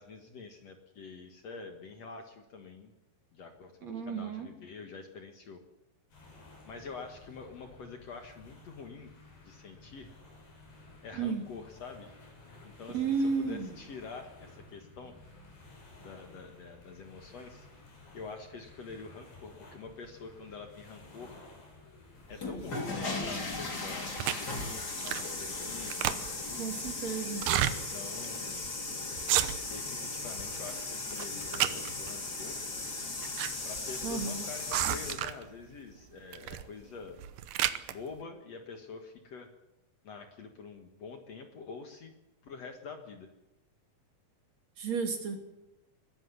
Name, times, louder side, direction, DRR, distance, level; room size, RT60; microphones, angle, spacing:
voice 1, 0.0-2.9 3.3-5.6 6.7-9.1 9.4-10.1 11.0-12.1 12.6-15.1 16.0-17.7 18.1-21.4 22.3-26.8 27.6-28.6 29.6-32.6 33.6-37.2 37.9-39.5 40.0-42.1 42.4-43.3, left 4 dB, 55° left, 5 dB, 2.4 m, -46 dB
voice 2, 3.8-4.5 11.1-11.4 12.9-13.7 26.6-27.5 34.0-34.5 44.8-45.4, right 5 dB, 50° right, 4 dB, 3.8 m, -33 dB
sound 1, 6.1-24.5, left 2 dB, 70° left, 8.2 m, -54 dB
sound 2, 22.2-35.1, left 3 dB, 30° left, 3.3 m, -37 dB
sound 3, 24.2-24.5 25.0-25.4 25.7-26.5 27.3-27.7 28.2-28.3 28.6-28.8 29.2-29.8 30.2-30.7 31.1-32.1 32.9-33.5 33.8-33.9 34.7-35.5 36.3-36.7 37.1-37.9, right 12 dB, 70° right, 2.4 m, -31 dB
22.0 x 13.5 x 9.8 m, 0.95 s
omnidirectional pair, 4.2 m